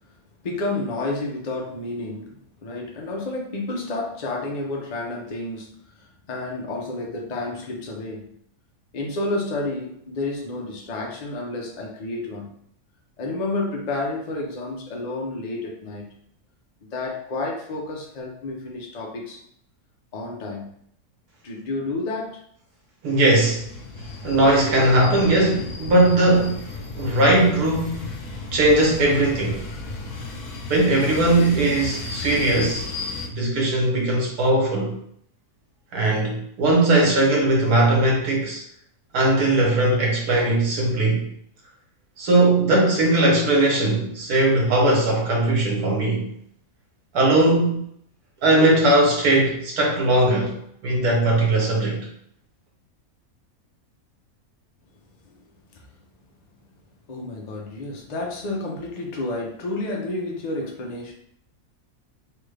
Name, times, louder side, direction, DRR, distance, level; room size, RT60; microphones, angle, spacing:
voice 1, 0.4-8.3 8.9-12.5 13.2-16.1 16.9-19.4 20.1-20.7 21.4-22.4 55.7-55.8 57.1-61.1, left 2 dB, 55° left, -1 dB, 0.4 m, -30 dB
voice 2, 23.0-23.6 24.2-26.7 26.9-28.2 28.5-29.6 30.7-32.9 33.3-34.9 35.9-38.6 39.1-41.3 42.2-46.3 47.1-47.8 48.4-50.6 50.8-52.1, right 2 dB, 80° right, -1 dB, 1.4 m, -19 dB
sound 1, 23.5-33.3, left 3 dB, 90° left, 1.2 m, -34 dB
3.4 x 2.4 x 3.2 m, 0.67 s
omnidirectional pair, 1.6 m